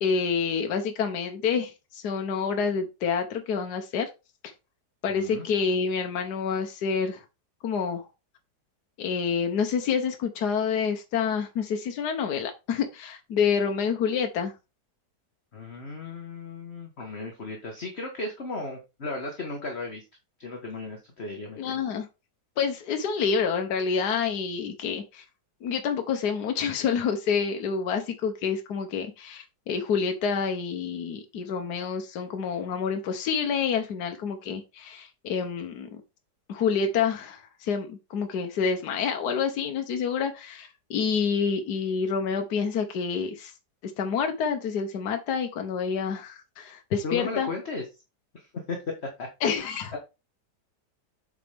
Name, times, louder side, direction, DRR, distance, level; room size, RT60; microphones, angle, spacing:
voice 1, 0.0-4.1 5.0-7.2 7.6-8.1 9.0-14.5 21.6-22.1 22.6-25.2 25.6-36.0 36.5-43.5 44.0-47.5 49.4-50.0, left 6 dB, 70° left, 1.5 m, -28 dB
voice 2, 5.1-5.5 15.5-20.0 20.4-21.8 47.0-47.8 48.3-48.8 49.2-49.3 49.9-50.0, left 3 dB, 40° left, 1.6 m, -35 dB
8.1 x 5.2 x 3.4 m
omnidirectional pair, 1.9 m